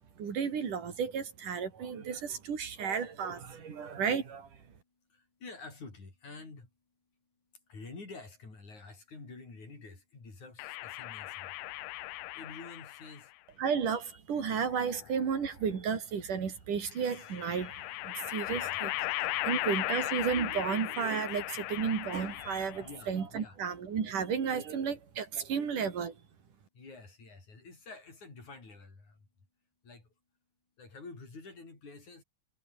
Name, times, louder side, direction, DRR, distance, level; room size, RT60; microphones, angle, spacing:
voice 1, 0.2-4.5 13.6-18.9 19.2-26.1, right 6 dB, 75° right, 5.0 m, -33 dB
voice 2, 5.4-6.7 7.7-11.5 12.4-13.3 18.5-18.8 19.4-19.8 22.8-23.6 26.8-29.1 29.8-30.0 30.8-32.2, left 3 dB, 65° left, 8.8 m, -49 dB
sound 1, 10.6-13.2 14.4-15.4 17.0-23.0, left 18 dB, 80° left, 2.2 m, -37 dB
omnidirectional pair, 3.6 m